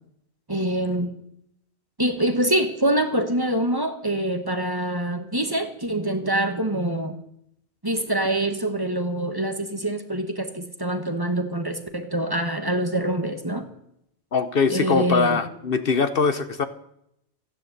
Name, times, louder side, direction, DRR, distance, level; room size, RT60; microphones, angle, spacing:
voice 1, 0.5-1.1 2.0-7.2 7.8-13.7 14.7-15.4, right 1 dB, 20° right, 7 dB, 1.3 m, -25 dB
voice 2, 14.3-16.7, left 5 dB, 55° left, 11 dB, 1.0 m, -22 dB
14.5 x 10.0 x 7.9 m, 0.75 s
omnidirectional pair, 1.2 m